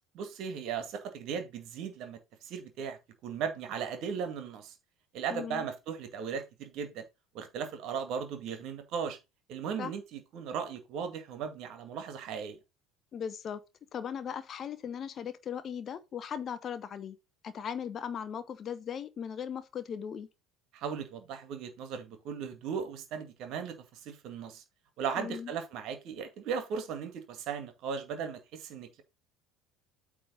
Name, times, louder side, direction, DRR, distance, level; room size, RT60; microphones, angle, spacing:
voice 1, 0.1-4.7 5.1-7.0 7.3-9.2 9.5-12.6 20.7-24.6 25.0-29.0, right 7 dB, 55° right, 2.0 m, -37 dB
voice 2, 5.3-5.6 9.8-9.9 13.1-13.6 13.9-17.2 17.4-20.3 25.1-25.5, left 8 dB, 40° left, 0.9 m, -38 dB
8.7 x 3.5 x 5.2 m
figure-of-eight pair, 65°, 0 cm